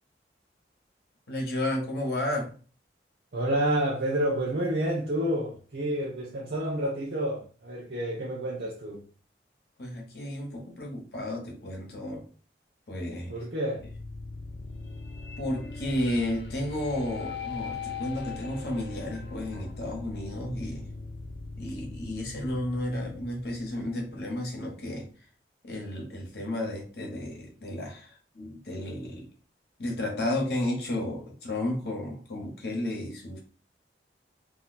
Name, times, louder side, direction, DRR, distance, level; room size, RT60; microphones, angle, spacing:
voice 1, 1.3-2.5 9.8-12.2 12.9-13.4 15.4-20.9 21.6-25.1 25.6-29.3 29.8-33.4, left 1 dB, 65° left, 1.0 m, -32 dB
voice 2, 3.3-9.0 13.3-13.9, right 1 dB, 70° right, 0.7 m, -29 dB
sound 1, 13.7-24.7, left 4 dB, 85° left, 0.6 m, -40 dB
2.7 x 2.2 x 4.0 m
head